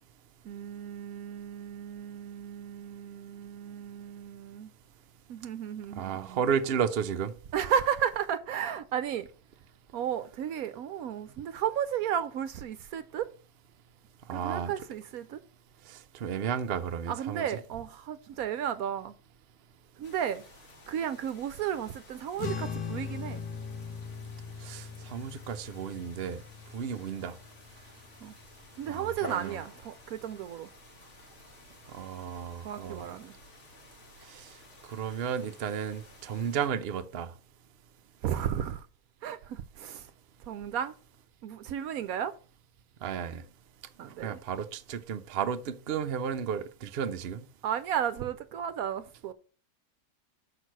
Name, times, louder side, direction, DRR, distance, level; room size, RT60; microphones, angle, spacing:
voice 1, 0.4-4.7 5.3-6.4 7.5-9.3 9.9-13.3 14.3-15.4 17.1-19.1 20.0-20.4 20.9-23.4 28.2-28.3 28.8-30.7 32.6-33.3 38.2-38.9 39.2-40.1 40.5-40.9 41.4-42.3 44.0-44.4 47.6-49.3, right 9 dB, 70° right, 1.0 m, -33 dB
voice 2, 6.0-7.3 14.3-14.7 16.1-17.5 24.6-26.4 26.7-27.3 28.9-29.6 31.9-33.1 34.3-34.4 34.9-37.3 43.0-43.4 44.2-47.4, right 7 dB, 55° right, 0.7 m, -33 dB
sound 1, 20.0-36.7, left 2 dB, 45° left, 1.8 m, -53 dB
sound 2, 22.4-29.0, left 6 dB, 80° left, 1.9 m, -40 dB
6.4 x 4.9 x 6.1 m
omnidirectional pair, 1.7 m